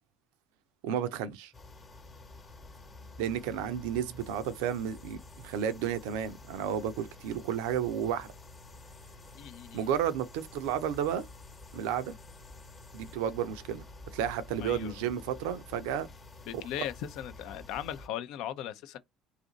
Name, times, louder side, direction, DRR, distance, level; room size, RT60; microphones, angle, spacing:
voice 1, 0.8-1.5 3.2-8.3 9.7-11.2 11.7-12.1 12.9-13.8 14.1-16.1, right 9 dB, 70° right, 0.4 m, -32 dB
sound 1, 1.5-18.1, left 2 dB, 30° left, 1.0 m, -50 dB
voice 2, 9.3-9.9 14.6-15.1 16.5-19.0, left 11 dB, 60° left, 0.4 m, -38 dB
2.6 x 2.5 x 3.9 m
figure-of-eight pair, 60°, 0 cm